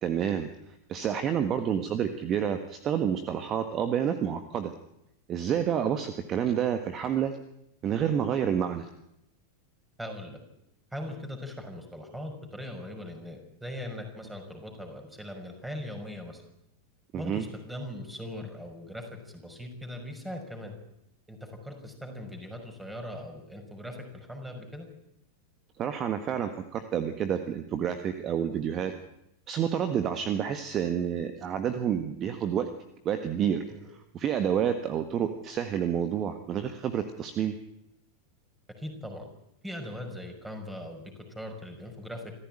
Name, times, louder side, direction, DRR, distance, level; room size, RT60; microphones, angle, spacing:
voice 1, 0.0-0.5 0.9-4.7 5.3-7.3 7.8-8.9 17.1-17.4 25.8-28.9 29.5-32.7 33.0-33.6 34.1-37.5, right 8 dB, 30° right, 9 dB, 1.5 m, -29 dB
voice 2, 10.0-10.4 10.9-16.4 17.1-20.8 21.3-24.9 33.7-33.8 38.8-39.3 39.6-42.3, left 1 dB, 5° right, 4 dB, 5.7 m, -40 dB
26.0 x 15.0 x 9.0 m, 0.82 s
figure-of-eight pair, 90°, 0 cm